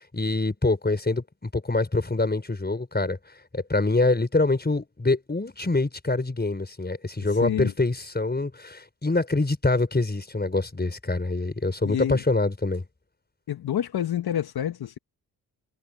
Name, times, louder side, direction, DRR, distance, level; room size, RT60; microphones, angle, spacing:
voice 1, 0.1-3.2 3.5-12.8, left 2 dB, 25° left, 5.2 m, -25 dB
voice 2, 7.2-7.7 11.8-12.2 13.5-15.0, left 10 dB, 70° left, 1.2 m, -28 dB
cardioid pair, 55°, 39 cm